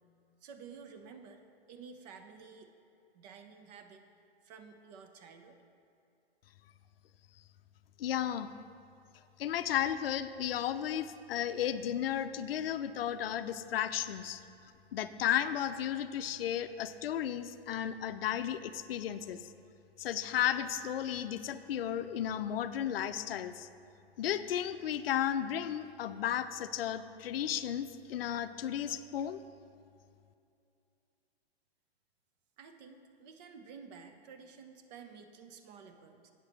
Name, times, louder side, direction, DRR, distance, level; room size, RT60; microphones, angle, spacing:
voice 1, 0.4-1.4 1.7-2.7 3.1-4.0 4.4-5.6 32.6-36.3, right 5 dB, 40° right, 7 dB, 0.8 m, -52 dB
voice 2, 8.0-8.5 9.4-14.4 14.9-19.5 20.0-23.7 24.2-29.4, left 10 dB, 65° left, 12 dB, 0.5 m, -34 dB
8.2 x 4.8 x 7.3 m, 2.6 s
hypercardioid pair, 135°, 32 cm